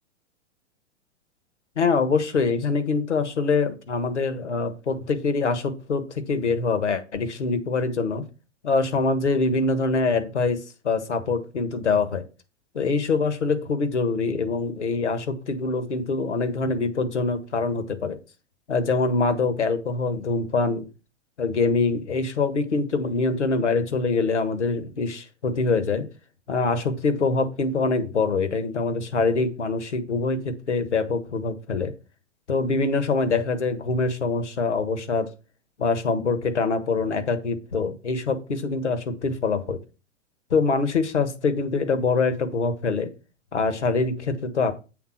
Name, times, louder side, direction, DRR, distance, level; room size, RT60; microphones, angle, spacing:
voice 1, 1.8-8.2 8.6-10.6 10.8-12.2 12.7-18.2 18.7-20.8 21.4-26.1 26.5-31.9 32.5-35.3 35.8-39.8 40.5-43.1 43.5-44.7, left 4 dB, 70° left, 10 dB, 1.6 m, -24 dB
8.4 x 3.8 x 5.8 m, 0.32 s
figure-of-eight pair, 105°, 36 cm